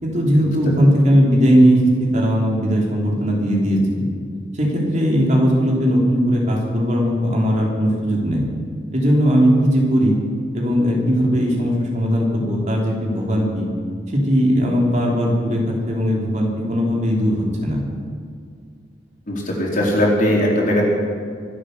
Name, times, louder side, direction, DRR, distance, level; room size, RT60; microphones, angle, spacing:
voice 1, 0.0-4.1 4.5-8.4 8.9-10.2 10.5-13.7 14.1-17.8, equal, 40° right, -2 dB, 3.2 m, -18 dB
voice 2, 19.3-20.8, left 1 dB, 45° left, -3 dB, 4.4 m, -19 dB
25.0 x 8.6 x 6.6 m, 2.1 s
head